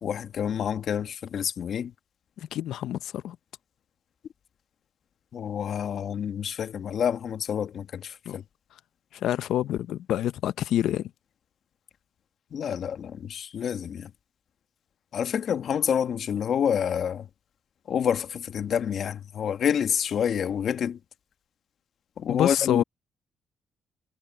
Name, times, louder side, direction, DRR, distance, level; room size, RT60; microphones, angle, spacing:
voice 1, 0.0-1.9 5.3-8.4 12.5-14.1 15.1-17.3 17.9-21.0 22.2-22.8, left 8 dB, 60° left, 1.3 m, -28 dB
voice 2, 2.4-3.4 8.3-8.4 9.1-11.1 22.3-22.8, left 12 dB, 80° left, 0.6 m, -27 dB
cardioid pair, 90°, 0 cm